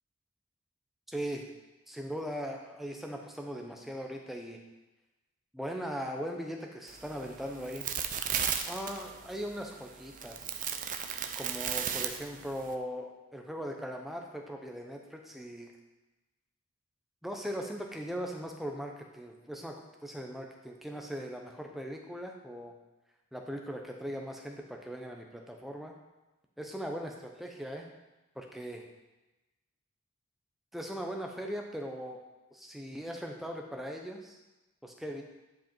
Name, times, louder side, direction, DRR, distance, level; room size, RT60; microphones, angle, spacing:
voice 1, 1.1-1.5 1.9-4.6 5.5-7.9 8.7-10.5 11.4-15.7 17.2-22.8 23.3-25.9 26.6-27.1 27.4-27.9 28.4-28.8 30.7-32.2 32.5-34.4 34.8-35.2, equal, ahead, 1 dB, 0.8 m, -39 dB
sound 1, 6.9-12.7, right 8 dB, 40° right, 0.5 m, -36 dB
10.5 x 5.1 x 4.5 m, 1.0 s
head